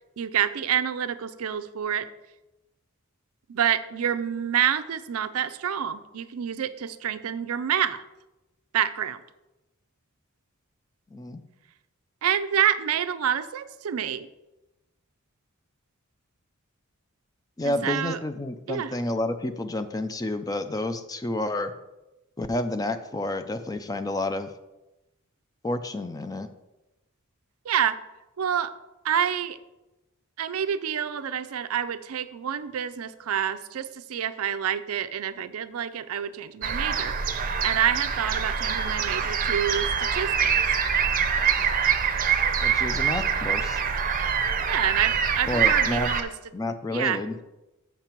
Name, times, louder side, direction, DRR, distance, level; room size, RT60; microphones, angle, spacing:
voice 1, 0.2-2.1 3.5-8.0 8.7-9.2 12.2-14.3 17.6-18.2 18.7-19.0 27.7-28.0 28.4-28.7 29.0-29.6 30.4-40.5 44.7-46.3 46.9-47.2, right 9 dB, 85° right, 13 dB, 0.5 m, -27 dB
voice 2, 17.6-21.7 22.4-24.5 25.6-26.5 42.6-43.8 45.5-46.1 46.5-47.3, left 1 dB, 15° left, 9 dB, 0.4 m, -30 dB
sound 1, 36.6-46.2, right 7 dB, 40° right, 0.6 m, -25 dB
7.2 x 5.9 x 4.5 m, 0.99 s
head